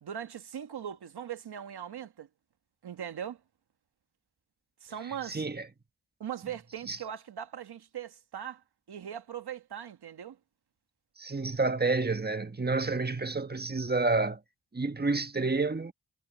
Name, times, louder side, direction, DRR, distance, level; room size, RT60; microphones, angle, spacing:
voice 1, 0.0-2.3 2.8-3.4 4.8-5.4 6.2-8.6 8.9-10.4, right 9 dB, 90° right, 1.4 m, -40 dB
voice 2, 5.0-5.7 6.9-7.0 11.2-14.4 14.7-15.9, right 3 dB, 25° right, 1.5 m, -29 dB
cardioid pair, 50°, 38 cm